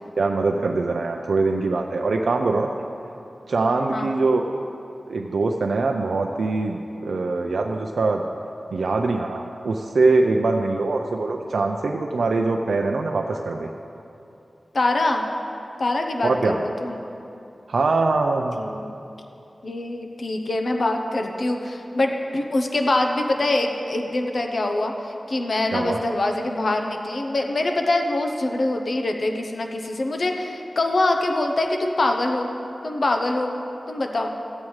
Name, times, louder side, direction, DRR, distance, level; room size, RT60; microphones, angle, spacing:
voice 1, 0.2-2.7 3.5-4.7 5.1-8.2 8.7-13.7 16.2-16.6 17.7-18.7 25.7-26.0, right 3 dB, 90° right, 3 dB, 0.4 m, -23 dB
voice 2, 14.7-15.3 15.8-17.0 18.6-18.9 19.6-32.5 32.8-33.5 33.9-34.3, left 2 dB, 60° left, 3 dB, 0.7 m, -24 dB
14.5 x 8.6 x 3.2 m, 2.8 s
wide cardioid pair, 90°, 0 cm